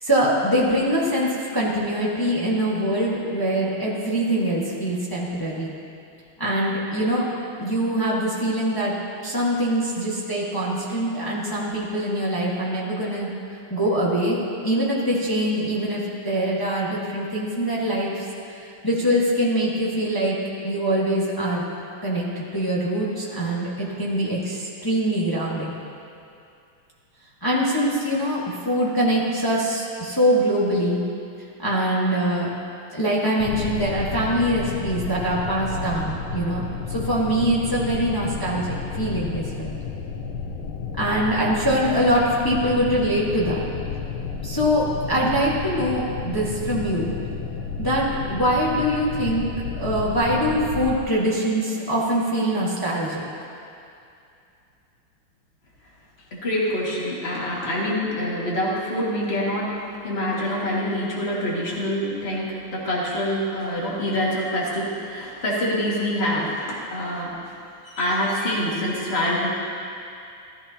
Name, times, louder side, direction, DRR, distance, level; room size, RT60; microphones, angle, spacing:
voice 1, 0.0-5.7 6.4-7.3 7.6-8.9 9.2-13.3 13.7-14.4 14.6-20.4 20.6-21.7 22.0-25.8 27.4-31.0 31.6-32.5 32.9-36.6 36.9-39.8 41.0-43.6 44.4-47.2 47.8-49.5 49.8-53.2, right 1 dB, 10° left, -6 dB, 1.2 m, -23 dB
sound 1, 33.4-51.0, left 5 dB, 75° left, 1.7 m, -31 dB
voice 2, 56.3-59.8 60.0-67.5 67.8-69.5, equal, 30° left, -6 dB, 2.1 m, -26 dB
15.5 x 13.5 x 2.9 m, 2.6 s
omnidirectional pair, 2.4 m